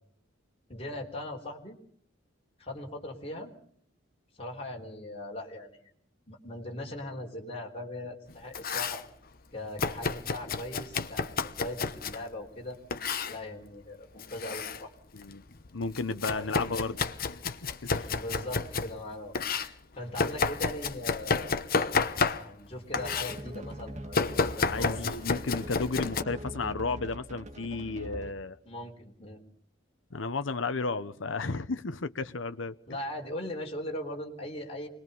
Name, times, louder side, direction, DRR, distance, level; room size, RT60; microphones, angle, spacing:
voice 1, 0.7-1.8 2.6-3.5 4.4-5.9 6.3-9.0 9.5-12.8 13.3-14.9 16.3-16.8 18.1-19.3 20.0-21.6 22.4-25.2 28.7-29.4 32.9-34.9, left 1 dB, 30° left, 0 dB, 3.8 m, -39 dB
Domestic sounds home sounds, 8.3-9.1 9.8-12.2 12.9-13.4 14.2-14.8 15.2-18.9 19.3-22.7 22.9-23.4 24.1-26.2, left 4 dB, 50° left, 1.1 m, -31 dB
voice 2, 15.1-15.4 15.7-17.0 17.4-18.2 24.6-28.6 30.1-32.7, left 3 dB, 80° left, 11 dB, 0.9 m, -33 dB
sound 1, 23.0-28.5, equal, 40° right, 1.8 m, -42 dB
25.5 x 20.5 x 5.5 m, 0.62 s
head